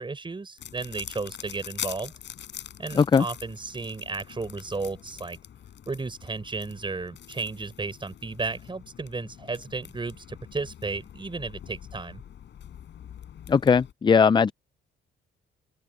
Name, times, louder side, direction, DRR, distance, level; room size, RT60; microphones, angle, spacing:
voice 1, 0.0-2.1 2.8-5.4 5.9-12.2, right 3 dB, 25° right, 6.8 m, -34 dB
sound 1, 0.6-13.9, left 10 dB, 65° left, 6.8 m, -44 dB
voice 2, 2.9-3.3 13.5-14.5, left 6 dB, 25° left, 0.4 m, -19 dB
open air
cardioid pair, 90°, 20 cm